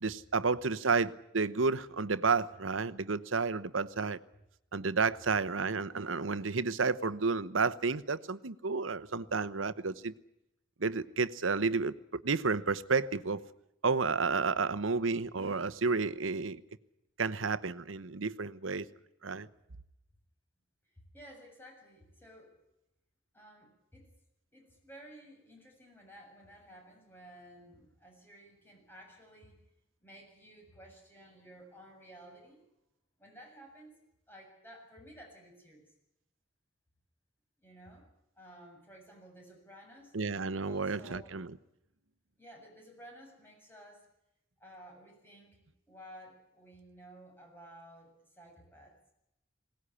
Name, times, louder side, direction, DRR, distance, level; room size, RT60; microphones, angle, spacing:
voice 1, 0.0-4.2 4.7-10.1 10.8-13.4 13.8-16.6 17.2-18.9 19.2-19.5 40.1-41.5, right 4 dB, 85° right, 1.0 m, -31 dB
voice 2, 21.0-22.6 23.3-24.1 24.5-29.5 30.0-32.6 33.2-34.0 34.3-35.8 37.6-38.0 38.4-40.1 40.6-41.4 42.4-44.0 44.6-48.9, equal, 10° left, 7.3 m, -54 dB
21.5 x 18.5 x 9.9 m
head